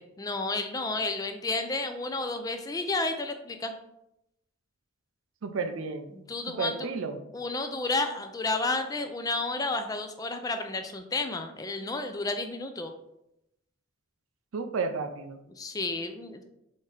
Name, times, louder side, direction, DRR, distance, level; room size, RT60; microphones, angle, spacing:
voice 1, 0.2-3.7 6.1-6.9 7.3-12.9 15.6-16.4, left 3 dB, 20° left, 7 dB, 0.3 m, -31 dB
voice 2, 5.4-6.1 6.6-7.2 14.5-15.4, right 4 dB, 90° right, 8 dB, 0.5 m, -32 dB
4.2 x 3.5 x 3.3 m, 0.82 s
head